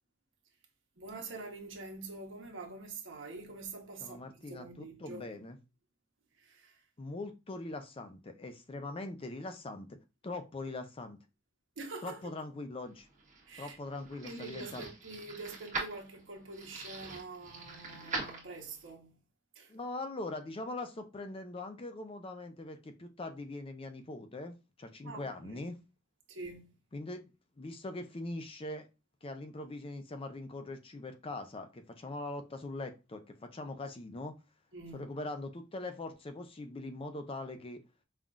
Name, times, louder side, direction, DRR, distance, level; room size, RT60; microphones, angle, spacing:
voice 1, 1.0-5.3 6.4-6.8 11.8-12.3 13.5-13.8 14.2-19.1 19.5-19.7 25.0-25.7 26.3-26.7 34.7-35.1, right 3 dB, 85° right, 1.1 m, -45 dB
voice 2, 4.0-5.6 7.0-9.9 10.2-11.2 12.0-13.1 13.6-14.9 19.7-25.8 26.9-27.3 27.6-28.9 29.2-34.3 34.9-37.8, left 2 dB, 30° left, 0.5 m, -42 dB
sound 1, 12.9-18.9, right 3 dB, 40° right, 1.3 m, -43 dB
5.4 x 2.4 x 2.4 m
head